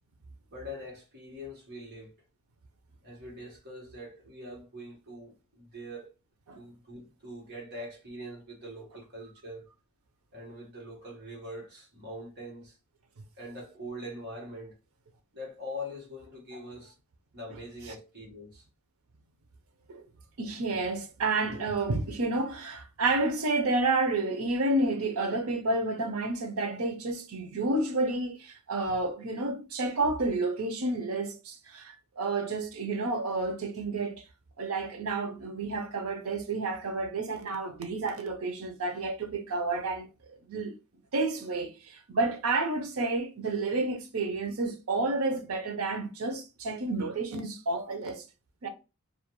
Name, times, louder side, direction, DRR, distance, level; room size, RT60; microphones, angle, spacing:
voice 1, 0.5-2.2 3.0-6.1 6.5-9.7 10.3-12.8 13.4-14.8 15.3-16.9 17.3-18.6 28.8-29.0 42.1-42.2, left 1 dB, 50° right, 1.2 m, -43 dB
voice 2, 20.4-34.2 34.6-40.1 40.5-40.8 41.1-48.2 48.6-48.7, right 2 dB, 90° right, 0.6 m, -30 dB
2.5 x 2.3 x 2.9 m
head